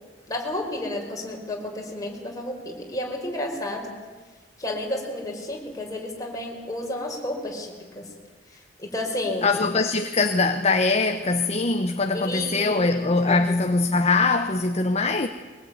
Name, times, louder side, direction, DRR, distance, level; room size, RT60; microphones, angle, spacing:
voice 1, 0.3-4.0 4.6-8.1 8.8-9.5 12.1-13.4, left 1 dB, 20° left, 5.2 m, -31 dB
voice 2, 9.4-15.3, left 3 dB, 35° left, 1.0 m, -22 dB
23.0 x 20.5 x 9.5 m
head